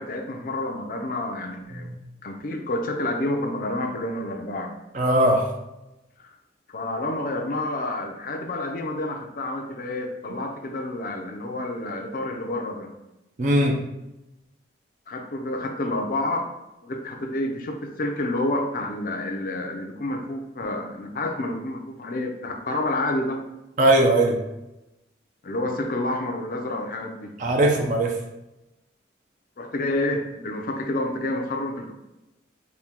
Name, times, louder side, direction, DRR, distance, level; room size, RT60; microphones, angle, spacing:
voice 1, 0.0-1.9 2.2-4.7 6.2-6.3 6.7-12.9 15.1-16.5 16.8-23.4 25.4-27.3 29.6-31.9, left 1 dB, 45° left, 3 dB, 0.4 m, -29 dB
voice 2, 4.9-5.5 13.4-13.9 23.8-24.4 27.4-28.1, right 1 dB, 40° right, 1 dB, 0.4 m, -19 dB
4.3 x 2.2 x 3.5 m, 0.94 s
head